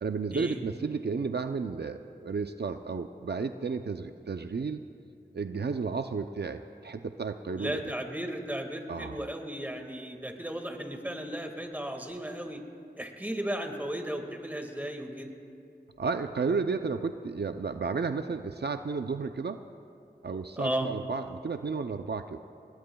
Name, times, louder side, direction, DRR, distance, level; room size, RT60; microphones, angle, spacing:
voice 1, 0.0-4.8 5.3-7.8 8.9-9.3 16.0-19.6 20.2-22.4, right 4 dB, 70° right, 8 dB, 0.5 m, -32 dB
voice 2, 7.5-12.6 13.0-15.3 20.6-20.9, right 1 dB, 10° right, 4 dB, 1.8 m, -35 dB
28.0 x 20.5 x 2.3 m, 2.5 s
wide cardioid pair, 55°, 18 cm